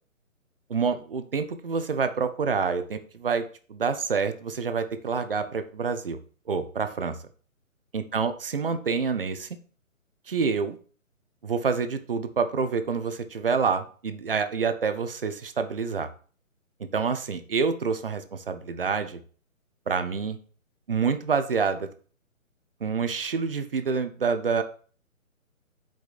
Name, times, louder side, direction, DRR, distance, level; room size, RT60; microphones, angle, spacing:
voice 1, 0.7-6.2 6.5-7.2 7.9-9.6 10.3-10.8 11.4-16.1 16.8-19.2 19.9-20.4 20.9-21.9 22.8-24.6, right 5 dB, 45° right, 9 dB, 0.4 m, -27 dB
4.8 x 2.6 x 3.9 m, 0.41 s
figure-of-eight pair, 150°, 41 cm